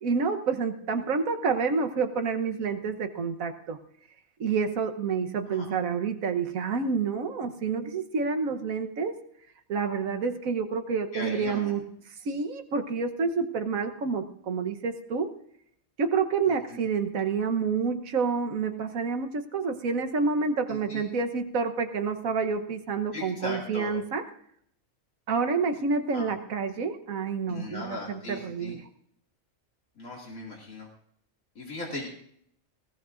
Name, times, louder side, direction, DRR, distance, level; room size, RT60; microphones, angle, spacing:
voice 1, 0.0-3.8 4.4-9.2 9.7-11.8 12.2-15.3 16.0-24.2 25.3-28.8, right 5 dB, 85° right, 7 dB, 1.5 m, -28 dB
voice 2, 11.1-11.7 16.5-16.8 20.7-21.0 23.1-23.9 26.1-26.3 27.5-28.8 30.0-30.9 31.5-32.1, left 2 dB, 90° left, -3 dB, 2.9 m, -38 dB
21.0 x 17.0 x 2.5 m, 0.69 s
omnidirectional pair, 1.4 m